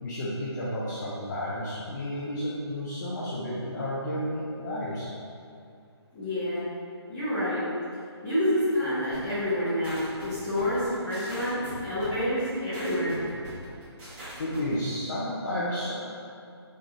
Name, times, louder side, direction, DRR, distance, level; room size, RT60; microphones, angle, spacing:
voice 1, 0.0-5.1 14.4-16.1, left 1 dB, 40° left, -9 dB, 0.7 m, -32 dB
voice 2, 6.1-6.6 7.1-7.6 8.2-13.2, left 1 dB, 15° left, -13 dB, 1.4 m, -28 dB
sound 1, 9.1-14.7, right 1 dB, 25° right, 1.3 m, -42 dB
3.6 x 3.2 x 3.7 m, 2.4 s
hypercardioid pair, 155°, 14 cm